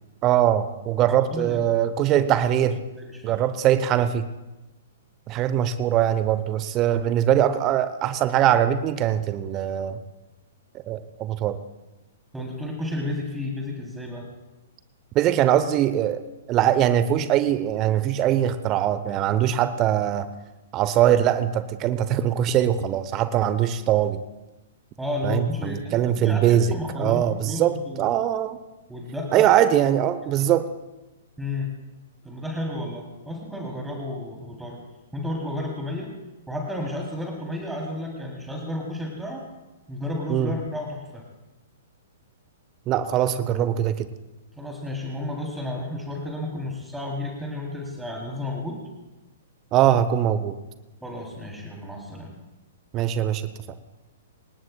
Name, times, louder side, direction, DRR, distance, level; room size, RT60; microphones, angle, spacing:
voice 1, 0.2-2.8 3.2-4.2 5.3-10.0 10.7-11.6 15.1-16.2 16.5-20.3 20.7-24.2 25.2-28.6 29.3-30.7 40.3-40.5 42.9-44.1 49.7-50.6 52.9-53.4, right 11 dB, 30° right, 13 dB, 0.9 m, -22 dB
voice 2, 1.1-1.6 2.9-3.4 12.3-14.3 25.0-28.1 28.9-29.5 31.4-31.7 32.2-34.8 35.1-36.1 36.5-39.4 39.9-41.2 44.6-48.8 51.0-52.3, left 1 dB, 5° right, -1 dB, 3.3 m, -32 dB
27.0 x 18.5 x 2.4 m, 1.1 s
figure-of-eight pair, 115°, 0 cm